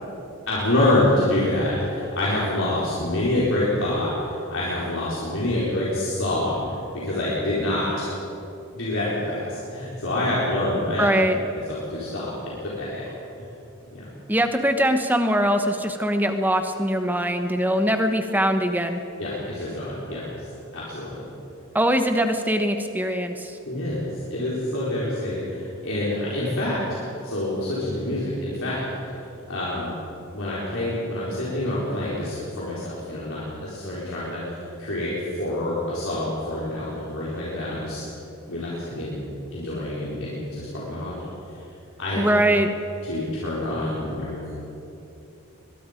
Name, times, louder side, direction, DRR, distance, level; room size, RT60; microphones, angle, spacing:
voice 1, 0.5-8.1 8.7-11.1 11.7-13.1 13.9-14.1 19.2-20.3 20.7-21.2 23.7-28.8 29.5-30.0 30.3-38.0 38.5-39.3 39.5-41.6 42.0-42.2 43.0-44.6, left 1 dB, 65° left, -8 dB, 4.4 m, -27 dB
voice 2, 11.0-11.4 14.3-19.0 21.7-23.6 42.2-42.7, equal, 10° right, 6 dB, 1.2 m, -22 dB
22.5 x 22.0 x 5.2 m, 2.8 s
head